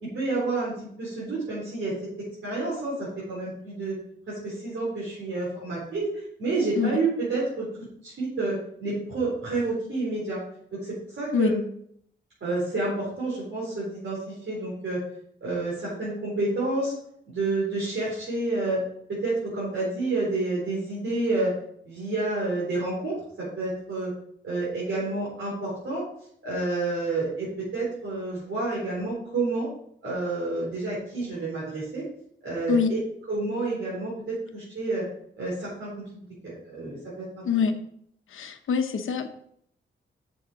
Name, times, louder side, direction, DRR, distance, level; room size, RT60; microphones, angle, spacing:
voice 1, 0.0-1.9 2.4-3.9 4.3-6.1 6.4-10.4 10.8-11.6 12.4-15.0 15.4-16.9 17.3-18.8 19.1-21.5 21.8-24.1 24.4-26.0 26.4-29.7 30.0-32.0 32.4-33.0 33.3-35.0 35.4-37.4, right 2 dB, 70° right, -7 dB, 4.2 m, -29 dB
voice 2, 38.3-39.3, left 6 dB, 80° left, 7 dB, 0.9 m, -24 dB
7.2 x 7.1 x 5.0 m, 0.68 s
wide cardioid pair, 100°, 21 cm